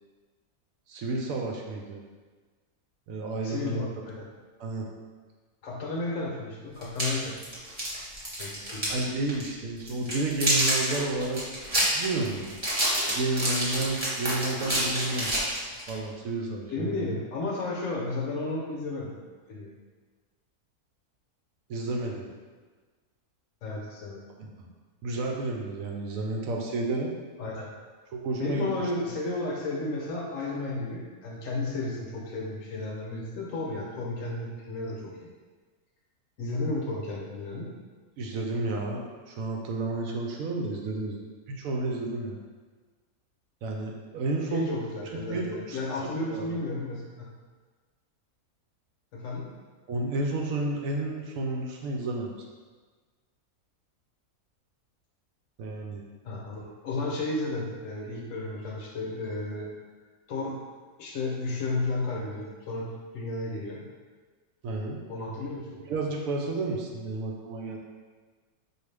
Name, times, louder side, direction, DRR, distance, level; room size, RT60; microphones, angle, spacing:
voice 1, 0.9-2.0 3.1-3.8 4.6-4.8 8.9-11.4 11.8-12.5 13.1-15.3 15.9-17.2 21.7-22.2 24.4-24.5 25.0-27.1 28.1-28.7 38.2-42.4 43.6-44.7 45.3-46.5 49.9-52.3 55.6-56.0 64.6-65.0 65.9-67.8, right 2 dB, 70° right, 0 dB, 0.9 m, -31 dB
voice 2, 3.4-4.3 5.6-7.3 8.4-8.9 16.7-19.2 19.5-19.7 23.6-24.2 27.4-27.7 28.4-35.3 36.4-37.7 44.5-47.3 49.1-49.5 56.2-59.7 60.3-60.6 61.0-62.9 63.1-63.8 65.1-65.8, left 2 dB, 65° left, -2 dB, 1.0 m, -33 dB
sound 1, 6.8-9.0 9.3-9.5 9.9-15.9, right 1 dB, 30° right, 1.0 m, -28 dB
4.7 x 2.5 x 3.3 m, 1.4 s
omnidirectional pair, 1.6 m